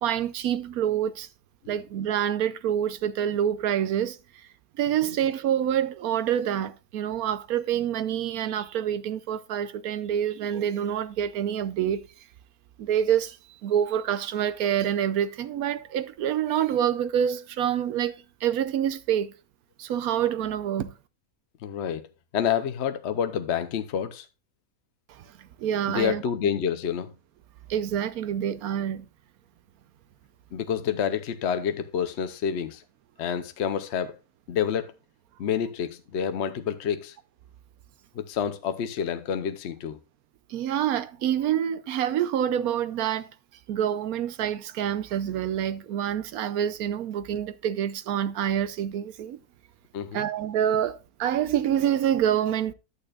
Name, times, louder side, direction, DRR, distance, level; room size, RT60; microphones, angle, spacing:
voice 1, 0.0-1.3 1.7-4.2 4.8-12.0 12.8-19.3 19.8-20.9 25.1-26.2 27.7-29.1 40.5-43.3 43.7-49.4 50.1-52.7, right 10 dB, 75° right, 1.1 m, -27 dB
voice 2, 21.6-22.1 22.3-24.3 25.9-27.1 30.5-32.8 33.2-34.2 34.5-35.0 35.4-37.2 38.1-40.0 49.9-50.3, left 8 dB, 60° left, 0.8 m, -28 dB
11.5 x 8.7 x 2.3 m
omnidirectional pair, 1.6 m